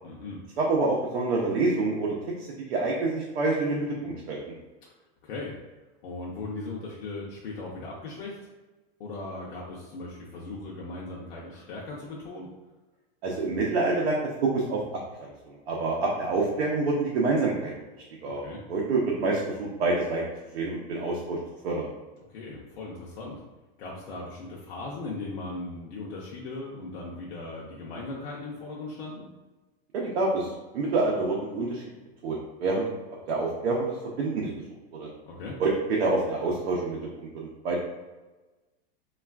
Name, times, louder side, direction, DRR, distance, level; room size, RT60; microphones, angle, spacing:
voice 1, 0.0-0.4 5.2-5.6 6.0-8.4 9.0-12.5 18.2-18.6 22.3-23.4 23.8-29.3 35.3-35.6, left 2 dB, 65° left, -4 dB, 0.6 m, -38 dB
voice 2, 0.6-4.4 13.2-14.8 15.2-17.7 18.2-18.4 18.7-20.2 20.5-21.4 21.6-21.9 29.9-31.8 32.2-32.9 33.3-34.5 34.9-35.1 35.6-37.8, right 3 dB, 85° right, -3 dB, 0.6 m, -27 dB
3.2 x 2.4 x 2.3 m, 1.2 s
supercardioid pair, 175°, 31 cm